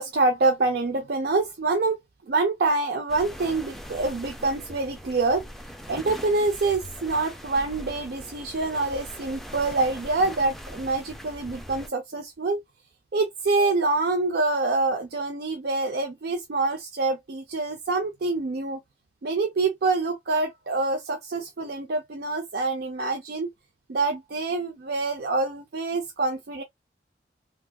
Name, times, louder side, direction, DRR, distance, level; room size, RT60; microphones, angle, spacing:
voice 1, 0.0-2.0 2.3-5.4 5.9-12.6 13.1-18.8 19.2-23.5 23.9-26.6, right 3 dB, 60° right, 0.5 m, -26 dB
sound 1, 3.1-11.9, equal, ahead, 0.5 m, -41 dB
3.5 x 2.5 x 2.3 m
head